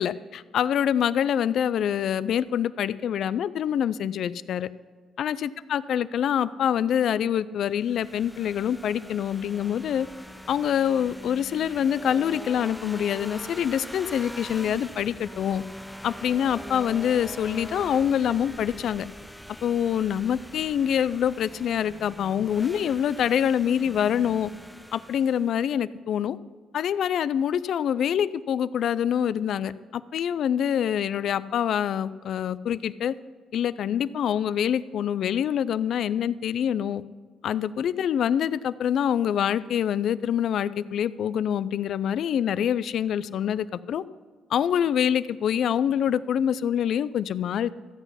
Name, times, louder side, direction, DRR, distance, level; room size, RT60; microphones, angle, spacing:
voice 1, 0.0-4.7 5.2-10.1 10.5-15.6 16.0-19.1 19.6-24.5 24.9-26.4 26.7-33.1 33.5-37.0 37.4-44.0 44.5-47.7, left 9 dB, 70° left, 17 dB, 0.3 m, -25 dB
sound 1, 7.7-25.6, equal, ahead, 0.5 m, -42 dB
14.0 x 8.1 x 5.7 m, 1.5 s
cardioid pair, 90°, 0 cm